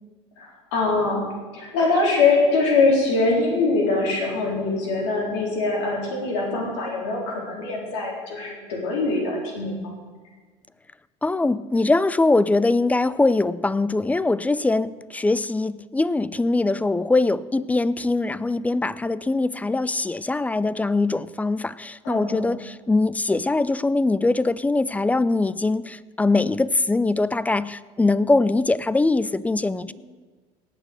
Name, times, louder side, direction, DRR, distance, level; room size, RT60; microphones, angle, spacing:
voice 1, 0.4-1.2 1.5-10.0 22.0-22.4 29.9-30.0, left 3 dB, 85° left, -2 dB, 4.0 m, -23 dB
voice 2, 11.2-29.9, left 2 dB, 10° left, 18 dB, 0.4 m, -22 dB
18.0 x 6.6 x 6.8 m, 1.4 s
supercardioid pair, 100°, 15 cm